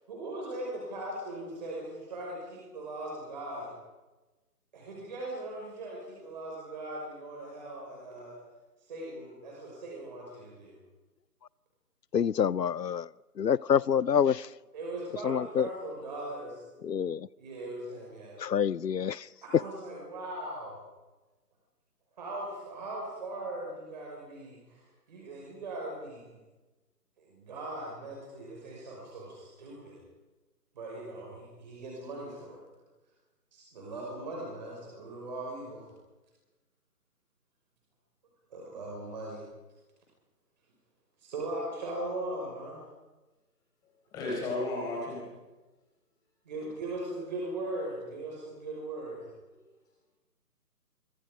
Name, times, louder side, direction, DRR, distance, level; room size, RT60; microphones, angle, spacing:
voice 1, 0.1-3.7 4.7-8.3 8.9-10.7 14.7-16.5 17.4-18.4 19.4-20.8 22.2-26.4 27.2-30.0 30.7-32.6 33.5-35.9 38.5-39.4 41.2-42.9 46.4-49.3, right 1 dB, 25° right, 5.9 m, -39 dB
voice 2, 12.1-13.1 13.4-14.5 15.2-15.7 16.9-17.2 18.4-19.3, left 8 dB, 90° left, 0.7 m, -27 dB
voice 3, 44.1-45.2, left 2 dB, 10° left, 4.5 m, -33 dB
30.0 x 24.5 x 5.2 m
figure-of-eight pair, 165°, 48 cm